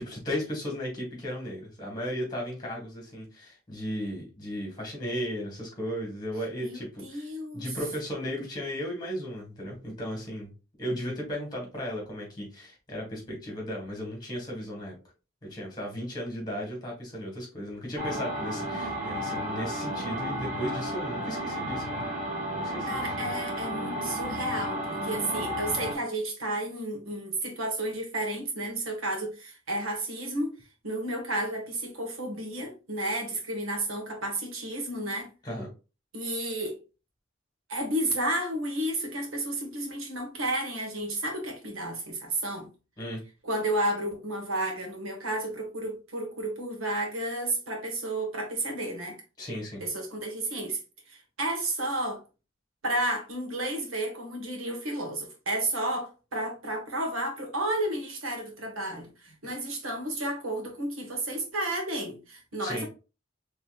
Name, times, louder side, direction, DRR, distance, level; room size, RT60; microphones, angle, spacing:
voice 1, 0.0-7.3 7.5-10.5 10.8-15.0 15.5-22.0 22.5-23.1 35.4-35.7 43.0-43.2 49.4-49.8 62.6-62.9, equal, 20° left, 1.8 m, -35 dB
voice 2, 6.6-7.6 22.9-30.5 30.8-35.3 36.1-36.8 37.7-42.7 43.4-49.2 49.8-50.8 51.1-52.2 52.8-62.9, right 1 dB, 80° right, 1.4 m, -32 dB
sound 1, 18.0-25.9, equal, 35° right, 1.1 m, -33 dB
4.4 x 3.3 x 2.5 m
head